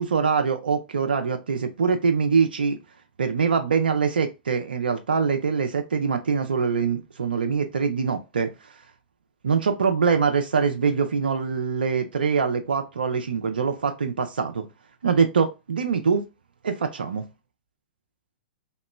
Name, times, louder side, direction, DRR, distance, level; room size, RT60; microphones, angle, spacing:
voice 1, 0.0-2.8 3.2-8.5 9.4-14.6 15.0-16.2 16.6-17.2, right 5 dB, 80° right, 0.4 m, -23 dB
2.9 x 2.1 x 3.0 m
hypercardioid pair, 115°, 5 cm